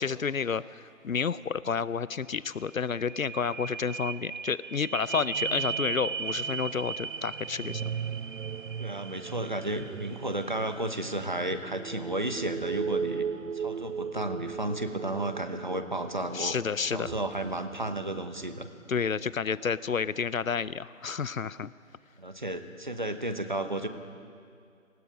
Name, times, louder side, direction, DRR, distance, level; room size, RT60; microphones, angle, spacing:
voice 1, 0.0-8.0 16.3-17.1 18.9-21.7, left 6 dB, 75° left, 18 dB, 0.7 m, -30 dB
sound 1, 2.3-2.4 2.6-18.6 19.1-19.2, right 7 dB, 65° right, 0.5 m, -36 dB
Domestic sounds home sounds, 6.2-15.6 15.8-15.9 16.5-16.9 17.2-17.6 17.9-20.0 20.5-20.6 21.2-21.3, left 1 dB, 10° left, 4.0 m, -61 dB
voice 2, 8.8-13.2 13.5-16.6 16.9-18.7 22.2-23.9, right 1 dB, 35° right, 9 dB, 1.0 m, -33 dB
29.5 x 20.0 x 5.2 m, 2.3 s
figure-of-eight pair, 175°, 41 cm